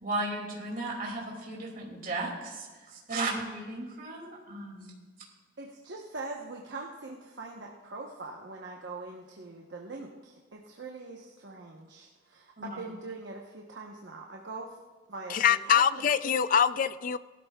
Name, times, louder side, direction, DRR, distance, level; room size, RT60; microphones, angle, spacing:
voice 1, 0.0-4.9 12.6-12.8, right 2 dB, 50° right, -2 dB, 2.5 m, -35 dB
voice 2, 5.6-14.8 15.1-15.8, right 3 dB, 70° right, -1 dB, 1.0 m, -42 dB
voice 3, 15.3-17.2, left 8 dB, 45° left, 14 dB, 0.4 m, -24 dB
19.0 x 12.5 x 2.3 m, 1.4 s
head